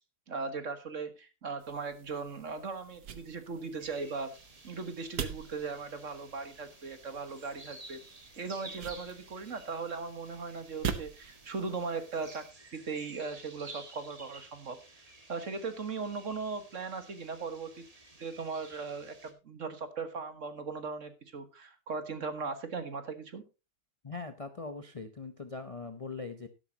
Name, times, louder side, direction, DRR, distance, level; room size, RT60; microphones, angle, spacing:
voice 1, 0.3-4.3 4.6-8.0 8.4-12.4 12.7-17.8 18.2-23.4, right 4 dB, 50° right, 9 dB, 1.7 m, -38 dB
sound 1, 1.6-12.5, right 7 dB, 75° right, 1.7 m, -44 dB
sound 2, 3.8-19.3, right 2 dB, 20° right, 1.8 m, -53 dB
voice 2, 24.0-26.5, left 4 dB, 30° left, 9 dB, 0.6 m, -41 dB
12.0 x 12.0 x 2.8 m, 0.29 s
omnidirectional pair, 1.8 m